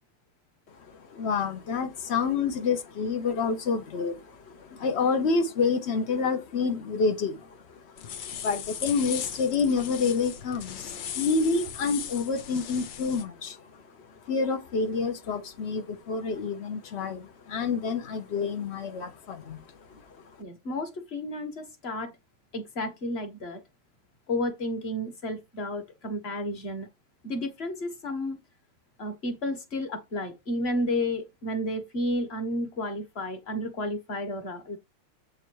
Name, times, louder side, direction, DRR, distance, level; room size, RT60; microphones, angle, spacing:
voice 1, 0.9-13.6 14.3-19.6 19.9-20.0, left 4 dB, 85° left, 0.5 m, -28 dB
sound 1, 8.0-13.2, left 8 dB, 65° left, 1.5 m, -38 dB
voice 2, 20.4-22.1 22.5-23.6 24.3-26.9 27.2-28.4 29.0-34.8, left 1 dB, 35° left, 1.2 m, -32 dB
7.9 x 3.9 x 4.6 m
omnidirectional pair, 2.4 m